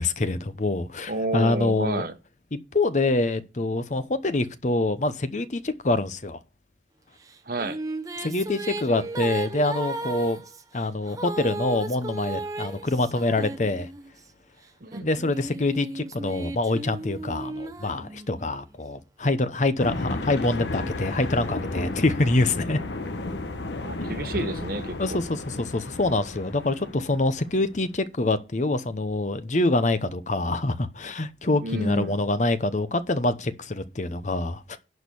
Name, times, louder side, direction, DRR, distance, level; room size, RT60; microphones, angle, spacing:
voice 1, 0.0-2.0 2.5-6.4 8.2-10.4 10.7-13.9 15.0-22.8 25.0-34.6, left 2 dB, 40° left, 0.8 m, -25 dB
voice 2, 1.1-2.1 7.4-7.8 14.8-15.1 23.8-25.2 31.6-32.2, right 2 dB, 55° right, 1.1 m, -30 dB
Female singing, 7.3-14.2 14.9-18.6, right 2 dB, 20° right, 0.8 m, -35 dB
sound 1, 19.8-27.8, left 2 dB, 80° left, 1.1 m, -33 dB
11.0 x 4.4 x 6.9 m
head